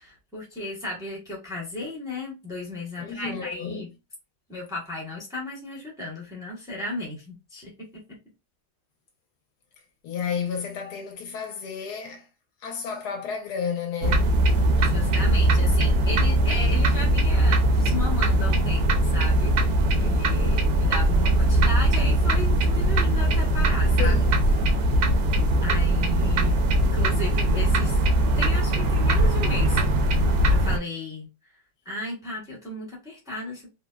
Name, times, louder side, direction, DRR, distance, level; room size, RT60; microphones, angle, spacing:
voice 1, 0.0-3.9 4.5-8.2 14.8-24.1 25.6-28.0 28.3-29.8 30.5-31.3 31.8-33.7, left 2 dB, 5° right, 0.6 m, -35 dB
voice 2, 3.0-3.9 10.0-12.3 12.6-14.4 24.0-24.3, left 7 dB, 70° left, 1.1 m, -32 dB
sound 1, 14.0-30.8, right 1 dB, 70° right, 0.9 m, -21 dB
3.2 x 2.0 x 2.2 m
omnidirectional pair, 2.0 m